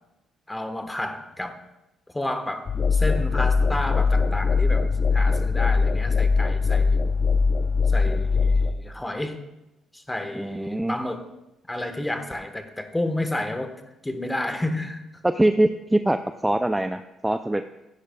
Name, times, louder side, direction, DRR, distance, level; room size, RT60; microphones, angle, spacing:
voice 1, 0.5-1.6 2.1-7.0 7.9-9.4 9.9-11.2 11.7-13.8 14.0-15.0, left 1 dB, 10° left, 7 dB, 1.1 m, -31 dB
sound 1, 2.7-8.7, left 4 dB, 45° left, 0.7 m, -21 dB
voice 2, 10.3-10.9 15.3-16.2 16.4-17.6, right 1 dB, 10° right, 8 dB, 0.4 m, -23 dB
15.5 x 10.0 x 2.3 m, 0.96 s
cardioid pair, 95°, 0 cm